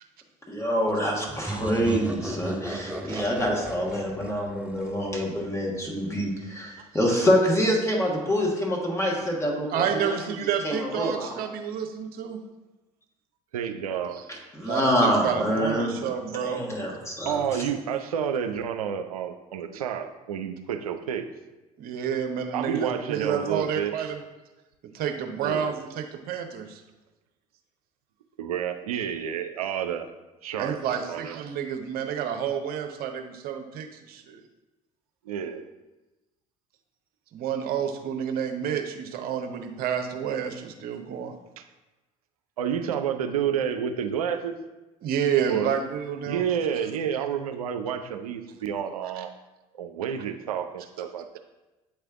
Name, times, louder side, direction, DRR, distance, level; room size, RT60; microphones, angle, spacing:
voice 1, 0.5-11.4 14.3-17.7, equal, 15° left, -1 dB, 1.4 m, -26 dB
sound 1, 1.3-5.8, right 1 dB, 5° right, 0.6 m, -35 dB
voice 2, 3.0-3.5 6.9-7.1 13.5-14.4 17.2-21.3 22.5-24.0 25.4-25.8 28.4-30.1 30.4-31.4 35.3-35.7 41.6-41.7 42.6-44.5 45.5-45.7 46.3-49.3 49.7-51.4, right 8 dB, 85° right, 8 dB, 0.4 m, -30 dB
voice 3, 9.7-12.4 14.6-16.7 21.8-24.2 24.9-26.8 30.6-34.4 37.3-41.3 45.0-46.4, right 8 dB, 55° right, 5 dB, 0.8 m, -29 dB
8.2 x 3.3 x 3.5 m, 1.1 s
hypercardioid pair, 65°, 18 cm